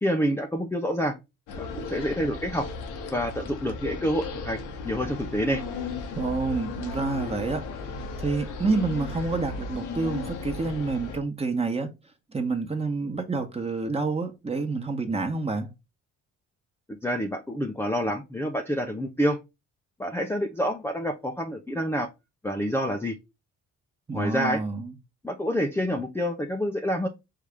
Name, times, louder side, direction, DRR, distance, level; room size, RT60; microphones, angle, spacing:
voice 1, 0.0-1.2 1.6-2.7 3.1-5.6 16.9-19.4 20.0-22.1 22.4-23.2 24.1-24.6 25.2-27.1, equal, 10° left, 0.6 m, -27 dB
sound 1, 1.5-11.2, left 4 dB, 85° left, 1.2 m, -35 dB
voice 2, 6.1-7.6 8.2-11.9 12.3-15.7 24.1-24.9, right 3 dB, 20° right, 1.2 m, -28 dB
4.8 x 2.8 x 3.5 m
cardioid pair, 90°, 30 cm